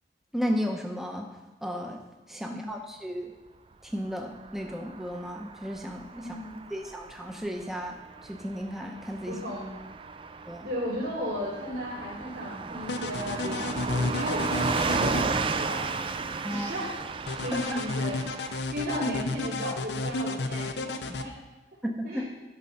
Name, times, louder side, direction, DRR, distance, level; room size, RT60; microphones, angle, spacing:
voice 1, 0.3-1.3 1.6-2.0 2.3-3.3 3.8-6.3 6.7-8.0 8.2-9.4 10.5-10.7 16.4-16.7 17.7-17.8 21.8-22.2, equal, ahead, 2 dB, 0.7 m, -34 dB
Car passing by / Truck, 4.3-18.6, right 4 dB, 30° right, 0.4 m, -34 dB
voice 2, 6.2-6.5 9.3-9.7 10.6-15.8 16.5-16.9 17.4-18.2 18.7-21.3 22.0-22.3, equal, 85° right, -11 dB, 3.1 m, -35 dB
sound 1, 12.8-15.2 17.3-21.2, left 2 dB, 75° left, 0.6 m, -31 dB
12.0 x 5.2 x 5.7 m, 1.1 s
head